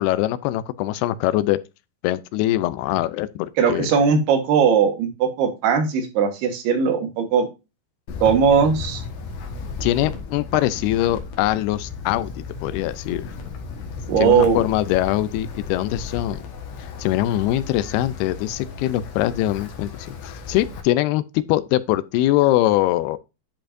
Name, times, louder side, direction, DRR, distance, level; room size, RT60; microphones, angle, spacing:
voice 1, 0.0-1.6 2.0-3.9 9.8-12.3 12.6-13.3 14.2-16.5 17.0-23.2, left 15 dB, 90° left, 2.6 m, -22 dB
voice 2, 3.6-7.5 8.2-9.0 14.1-14.6, right 6 dB, 85° right, 3.5 m, -19 dB
Wind, 8.1-20.8, left 4 dB, 60° left, 2.4 m, -35 dB
10.5 x 5.1 x 2.6 m
omnidirectional pair, 4.5 m